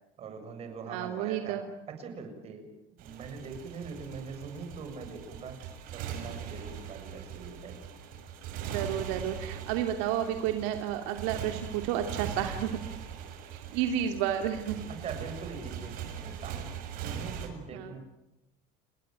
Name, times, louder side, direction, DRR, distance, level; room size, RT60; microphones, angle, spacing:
voice 1, 0.2-2.7 3.0-5.6 5.9-7.8 14.9-16.7 17.0-18.0, right 5 dB, 40° right, 6 dB, 7.2 m, -42 dB
voice 2, 0.9-1.6 8.6-12.8 13.7-14.8 17.7-17.9, right 10 dB, 80° right, 6 dB, 2.8 m, -31 dB
Motorcycle, 3.0-17.5, right 8 dB, 60° right, 6.7 m, -41 dB
30.0 x 21.0 x 9.3 m, 0.90 s
cardioid pair, 135°, 16 cm